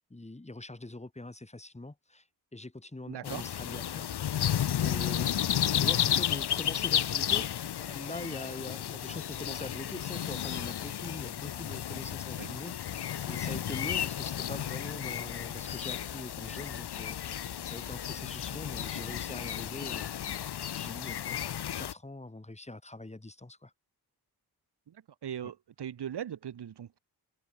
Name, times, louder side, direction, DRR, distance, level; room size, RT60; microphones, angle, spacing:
voice 1, 0.0-2.2 2.5-4.5 4.8-5.4 5.8-20.1 20.6-23.7 25.4-25.5, left 2 dB, 15° left, 3.8 m, -43 dB
voice 2, 3.1-3.4 12.4-12.5 24.9-25.0 25.2-27.0, right 9 dB, 80° right, 2.1 m, -39 dB
sound 1, 3.3-21.9, left 10 dB, 75° left, 1.2 m, -33 dB
cardioid pair, 75°, 40 cm